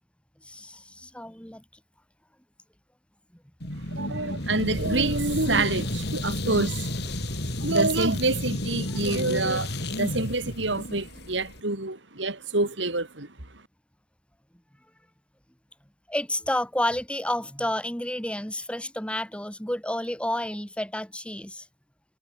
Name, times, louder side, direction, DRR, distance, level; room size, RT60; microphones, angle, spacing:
voice 1, 0.4-1.6 16.1-21.6, left 1 dB, 5° left, 3.1 m, -30 dB
sound 1, 3.6-11.6, left 1 dB, 60° left, 7.2 m, -31 dB
voice 2, 4.0-7.1 7.6-13.3, right 2 dB, 80° right, 3.8 m, -27 dB
head